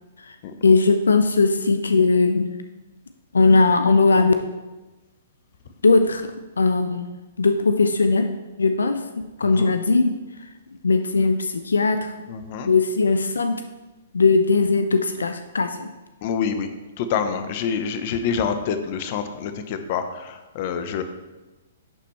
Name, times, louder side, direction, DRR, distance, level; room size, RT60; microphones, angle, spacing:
voice 1, 0.6-2.4 3.3-4.3 5.8-6.3 6.6-7.1 7.4-8.3 8.6-9.0 9.4-10.1 10.8-12.3 12.6-13.6 14.1-15.9, left 3 dB, 85° left, 7 dB, 0.4 m, -19 dB
voice 2, 12.3-12.7 16.2-16.7 17.0-21.0, left 7 dB, 45° left, 9 dB, 0.7 m, -27 dB
11.0 x 4.2 x 3.1 m, 1.1 s
hypercardioid pair, 125°, 0 cm